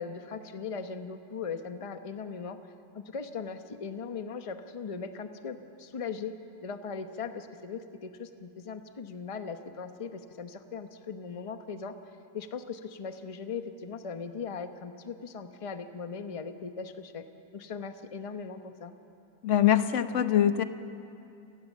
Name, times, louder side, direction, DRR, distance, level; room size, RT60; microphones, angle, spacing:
voice 1, 0.0-2.6 2.9-6.3 6.6-11.9 12.3-17.2 17.5-18.9, left 5 dB, 25° left, 8 dB, 0.8 m, -39 dB
voice 2, 19.4-20.6, left 10 dB, 50° left, 10 dB, 1.0 m, -23 dB
28.5 x 19.0 x 7.4 m, 2.7 s
omnidirectional pair, 1.9 m